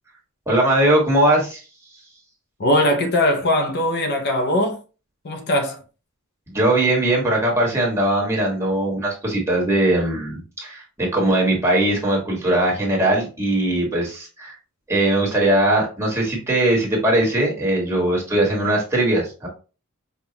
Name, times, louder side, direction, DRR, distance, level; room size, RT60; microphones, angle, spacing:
voice 1, 0.5-1.6 6.5-14.5 14.9-19.5, right 1 dB, 15° right, 1.5 m, -20 dB
voice 2, 2.6-4.8 5.2-5.8, left 1 dB, 50° left, 0.6 m, -20 dB
5.4 x 2.3 x 2.9 m
head